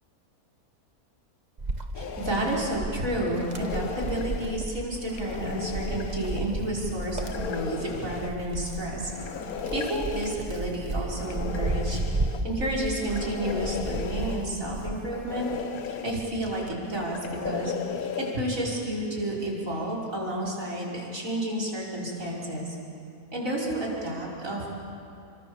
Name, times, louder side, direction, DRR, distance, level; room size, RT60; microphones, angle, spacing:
Wind, 1.6-15.7 16.1-17.6, right 2 dB, 30° right, 1.5 m, -34 dB
sound 1, 1.9-2.6 3.4-4.6 5.1-6.5 7.2-8.3 9.0-10.4 11.1-12.4 13.0-14.5 15.1-16.2 16.9-18.4, left 7 dB, 70° left, 1.5 m, -36 dB
voice 1, 2.0-9.1 9.7-12.0 12.4-15.5 16.0-17.7 18.2-22.8 23.3-24.7, right 1 dB, 60° right, -3 dB, 5.8 m, -31 dB
29.5 x 25.0 x 7.2 m, 2.6 s
omnidirectional pair, 1.6 m